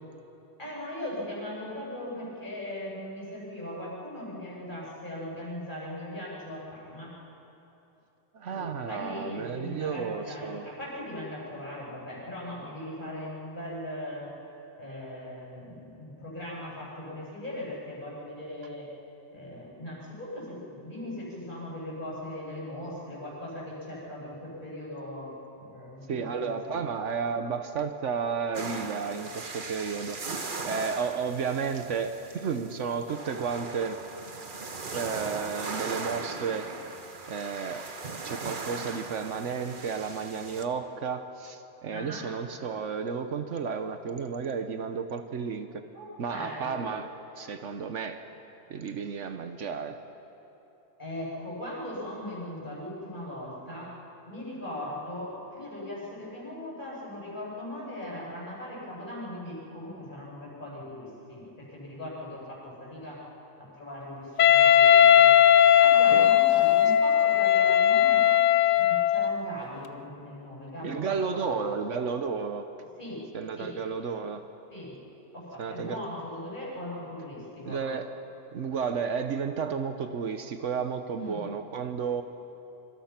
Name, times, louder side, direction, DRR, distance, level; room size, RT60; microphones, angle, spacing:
voice 1, 0.6-7.2 8.5-14.3 14.8-18.9 19.3-26.8 41.9-42.3 45.9-46.8 51.0-53.9 54.3-63.2 63.6-65.4 65.8-68.3 68.7-71.6 73.0-73.2 73.6-73.7 74.7-74.9 75.3-77.8 81.1-81.4, left 1 dB, 40° left, -6 dB, 8.0 m, -39 dB
voice 2, 8.3-10.7 26.1-30.2 30.6-34.0 34.9-36.7 37.3-37.9 38.2-45.7 46.2-47.1 47.4-48.2 48.7-50.0 66.1-66.3 70.8-72.6 73.3-74.4 75.6-76.0 77.7-78.1 78.5-82.2, right 6 dB, 80° right, 8 dB, 1.3 m, -32 dB
sound 1, 28.5-40.6, right 4 dB, 45° right, 1.4 m, -39 dB
Wind instrument woodwind instrument, 64.4-69.4, left 10 dB, 80° left, 1.0 m, -18 dB
26.0 x 25.5 x 5.9 m, 3.0 s
omnidirectional pair, 1.2 m